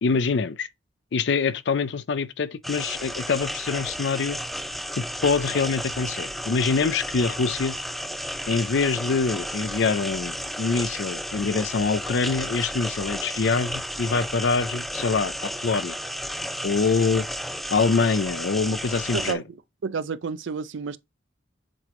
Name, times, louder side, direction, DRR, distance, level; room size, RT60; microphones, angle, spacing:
voice 1, 0.0-0.7 1.1-4.4 5.0-7.8 8.5-16.0 16.6-17.3 17.7-19.4, left 4 dB, 70° left, 0.5 m, -25 dB
sound 1, 2.6-19.3, equal, ahead, 0.4 m, -33 dB
voice 2, 19.1-19.6 19.8-21.0, right 5 dB, 90° right, 0.5 m, -30 dB
7.6 x 3.5 x 3.7 m
head